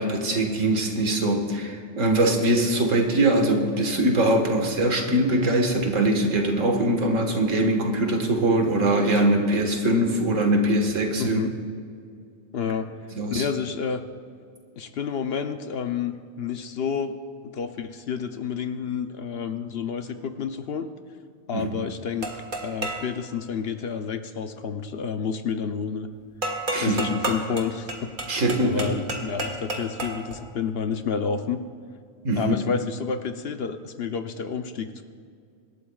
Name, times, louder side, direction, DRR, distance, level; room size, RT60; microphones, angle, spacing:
voice 1, 0.0-11.4 13.2-13.4 21.5-21.7 26.7-27.2 28.3-28.8 32.2-32.6, right 1 dB, 80° right, 3 dB, 1.9 m, -22 dB
voice 2, 11.2-11.5 12.5-12.9 13.3-14.0 14.8-17.1 17.4-20.9 21.5-26.1 26.7-28.1 28.6-31.6 32.3-35.0, left 6 dB, 60° left, 8 dB, 0.8 m, -30 dB
sound 1, 22.2-23.1 26.4-30.4, right 2 dB, 40° right, 1.6 m, -31 dB
25.5 x 12.0 x 2.4 m, 2.3 s
omnidirectional pair, 1.3 m